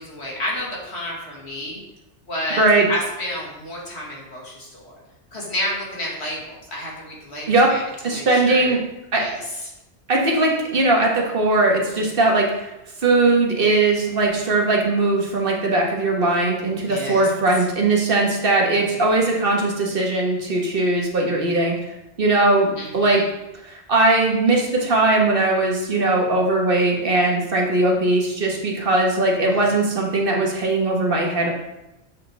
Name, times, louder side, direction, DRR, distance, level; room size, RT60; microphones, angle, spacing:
voice 1, 0.0-1.8 2.3-5.0 5.3-8.7 9.1-9.5 16.8-17.3 22.8-23.2 29.5-29.7, left 1 dB, 65° left, -3 dB, 2.2 m, -30 dB
voice 2, 2.6-2.9 7.5-7.7 8.0-8.8 9.1-9.2 10.1-12.7 13.0-21.8 22.2-23.2 23.6-31.5, right 2 dB, 50° right, 0 dB, 1.5 m, -19 dB
7.3 x 6.5 x 3.4 m, 0.94 s
omnidirectional pair, 1.2 m